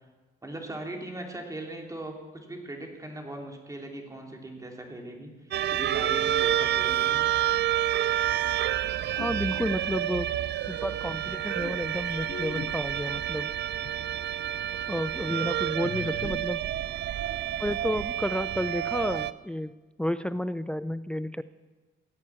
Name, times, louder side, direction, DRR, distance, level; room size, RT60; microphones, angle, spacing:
voice 1, 0.4-7.3, right 1 dB, 15° right, 1 dB, 3.1 m, -39 dB
sound 1, 5.5-19.3, right 12 dB, 60° right, 0.5 m, -29 dB
sound 2, 8.8-10.7 11.3-14.2 14.6-14.7 15.8-17.9, left 10 dB, 60° left, 0.7 m, -44 dB
voice 2, 9.1-10.3 10.7-13.5 14.9-16.6 17.6-19.7 20.0-21.4, equal, 5° left, 14 dB, 0.4 m, -31 dB
16.5 x 8.3 x 8.5 m, 1.2 s
cardioid pair, 90°, 20 cm